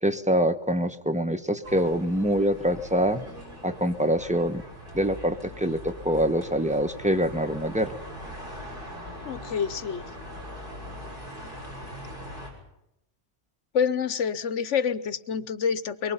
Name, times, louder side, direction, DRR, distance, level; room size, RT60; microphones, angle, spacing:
voice 1, 0.0-3.2 3.6-4.6 4.9-7.9, equal, 5° right, 9 dB, 1.0 m, -25 dB
sound 1, 1.6-12.5, left 1 dB, 45° right, 7.0 m, -41 dB
voice 2, 9.2-10.0 13.7-16.1, left 7 dB, 85° left, 15 dB, 1.3 m, -27 dB
23.5 x 23.0 x 5.6 m, 0.82 s
omnidirectional pair, 1.2 m